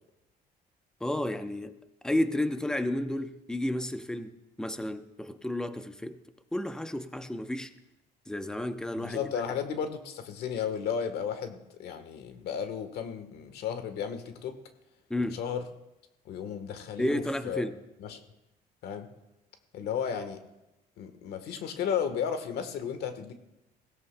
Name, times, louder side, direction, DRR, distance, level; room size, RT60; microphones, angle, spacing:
voice 1, 1.0-1.8 2.0-6.2 6.5-7.7 8.3-9.3 15.1-15.4 17.0-17.8, left 1 dB, 5° left, 0.8 m, -32 dB
voice 2, 9.0-14.6 15.3-15.6 16.2-17.6 18.0-18.2 18.8-19.1 19.7-20.4 21.0-23.3, left 7 dB, 75° left, 1.3 m, -34 dB
21.5 x 16.5 x 2.2 m
cardioid pair, 110°, 17 cm